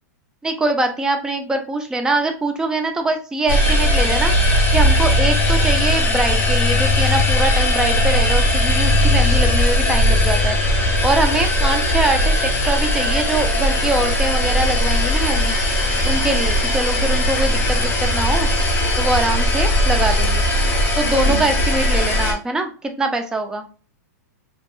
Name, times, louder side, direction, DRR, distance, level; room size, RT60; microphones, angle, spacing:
voice 1, 0.4-10.6 11.0-15.6 16.0-18.5 19.0-20.5 21.0-23.7, right 2 dB, 5° right, 5 dB, 0.3 m, -23 dB
sound 1, 3.5-22.3, left 1 dB, 20° left, 0.7 m, -18 dB
2.8 x 2.3 x 2.3 m, 0.37 s
supercardioid pair, 145°, 9 cm